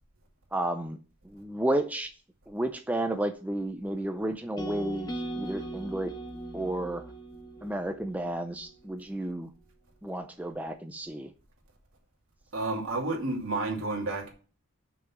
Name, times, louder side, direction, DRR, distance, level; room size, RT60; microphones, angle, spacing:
voice 1, 0.5-1.0 1.3-2.1 2.5-6.1 6.5-7.0 7.6-9.5 10.0-11.3, right 1 dB, 5° right, 0.4 m, -32 dB
sound 1, 4.6-8.7, right 1 dB, 20° left, 1.0 m, -39 dB
voice 2, 12.5-14.3, right 2 dB, 75° right, 2.5 m, -30 dB
6.1 x 5.9 x 6.0 m
head